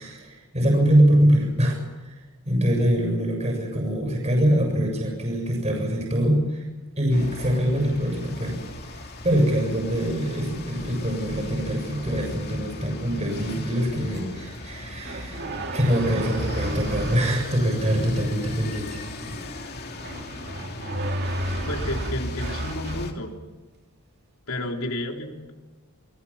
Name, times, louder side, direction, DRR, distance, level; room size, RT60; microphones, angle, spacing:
voice 1, 0.0-1.7 2.1-2.2 2.5-6.6 7.0-8.6 8.9-15.5 15.7-19.0, equal, 30° right, 2 dB, 7.1 m, -23 dB
sound 1, 7.1-23.1, left 1 dB, 45° left, 3.0 m, -37 dB
sound 2, 15.0-17.3 20.0-23.1, right 1 dB, 50° right, 2.3 m, -32 dB
voice 2, 21.7-23.3 24.5-25.5, left 1 dB, 65° left, 2 dB, 3.7 m, -31 dB
29.0 x 20.5 x 7.4 m, 1.2 s
head